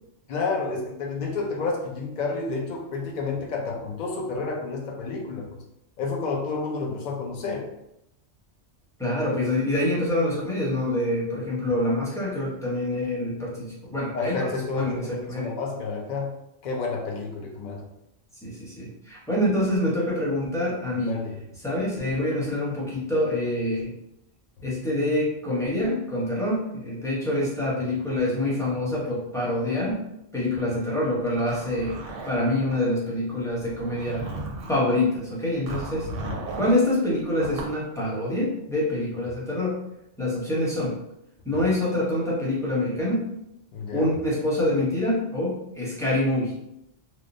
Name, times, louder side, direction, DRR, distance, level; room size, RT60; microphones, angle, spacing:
voice 1, 0.3-5.6 6.0-7.7 14.1-16.3 16.6-17.8 21.1-21.3 36.0-36.4 43.7-44.1, left 4 dB, 55° left, 0 dB, 0.5 m, -30 dB
voice 2, 9.0-15.5 18.4-21.2 21.6-23.9 24.6-30.0 30.3-32.0 32.2-34.2 34.7-36.1 36.6-39.8 40.2-40.9 41.4-43.3 43.9-46.5, left 1 dB, 5° left, -7 dB, 0.5 m, -26 dB
Zipper (clothing), 31.3-32.8 33.6-34.9 35.7-36.8 37.4-37.8, right 2 dB, 90° right, 0.9 m, -35 dB
2.9 x 2.0 x 2.5 m, 0.84 s
omnidirectional pair, 1.3 m